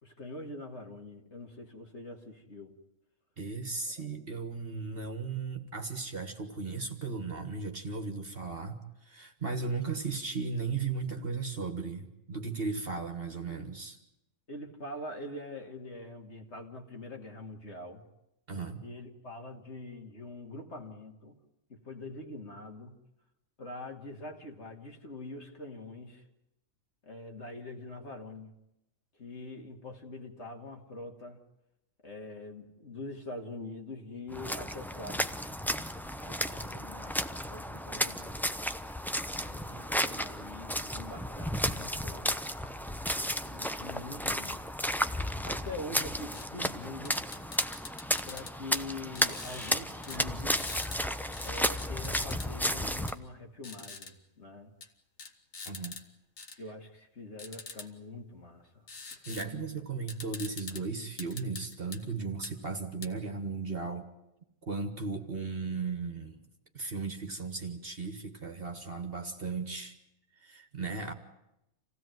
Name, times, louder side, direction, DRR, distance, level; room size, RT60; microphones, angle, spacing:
voice 1, 0.0-2.7 4.0-4.1 14.5-18.0 18.8-21.4 21.7-23.0 23.6-26.2 27.0-28.5 29.2-31.4 32.0-35.3 36.2-38.4 39.4-42.5 43.5-44.6 45.4-47.2 48.2-50.7 51.4-54.7 56.6-59.8, left 2 dB, 55° left, 2 dB, 2.5 m, -44 dB
voice 2, 3.4-14.0 18.5-18.8 55.7-56.0 59.3-64.1 64.6-66.5 66.7-70.0 70.4-71.1, right 4 dB, 45° right, 6 dB, 1.8 m, -36 dB
sound 1, 34.3-53.2, equal, ahead, 0.6 m, -33 dB
sound 2, 46.3-46.5 47.1-48.5 49.2-49.8 50.0-50.2 50.6-51.0 51.3-52.5 53.1-53.2 53.6-54.1 54.8-54.9 55.2-56.0 56.4-56.6 57.4-57.9 58.9-59.5 59.8-59.9 60.1-60.8 61.2-62.0 62.4-62.5 63.0-63.1, left 4 dB, 70° left, 2.0 m, -44 dB
27.5 x 16.5 x 9.3 m, 0.86 s
omnidirectional pair, 1.4 m